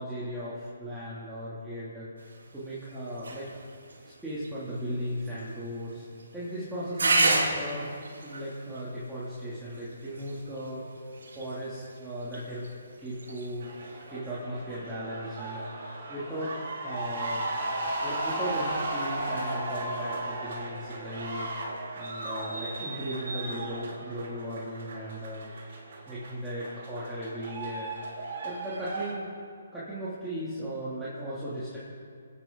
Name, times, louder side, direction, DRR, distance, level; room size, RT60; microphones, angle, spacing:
voice 1, 0.0-3.5 4.0-6.0 6.3-7.9 8.2-10.8 11.3-12.7 13.0-13.7 14.1-17.4 18.0-25.4 26.1-29.3 29.7-31.8, equal, 5° right, -12 dB, 3.0 m, -37 dB
sound 1, 2.2-14.2, right 2 dB, 70° right, 2.8 m, -34 dB
sound 2, 13.6-29.1, right 2 dB, 50° right, 4.3 m, -36 dB
28.5 x 9.9 x 4.1 m, 2.2 s
figure-of-eight pair, 140°, 0 cm